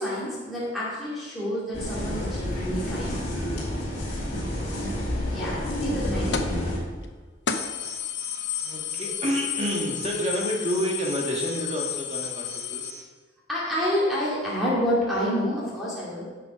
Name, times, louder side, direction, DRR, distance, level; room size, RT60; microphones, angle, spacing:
voice 1, 0.0-3.2 5.3-6.7 13.5-16.3, equal, ahead, -8 dB, 2.4 m, -28 dB
sound 1, 1.7-6.8, left 1 dB, 40° left, 3.0 m, -29 dB
voice 2, 4.5-4.8 8.6-12.8, equal, 35° right, -1 dB, 1.8 m, -29 dB
sound 2, 6.3-6.6 7.0-7.1 7.5-12.9, left 8 dB, 75° left, 0.8 m, -32 dB
Alarm, 7.5-13.0, right 4 dB, 55° right, 2.8 m, -44 dB
11.5 x 6.9 x 5.2 m, 1.4 s
head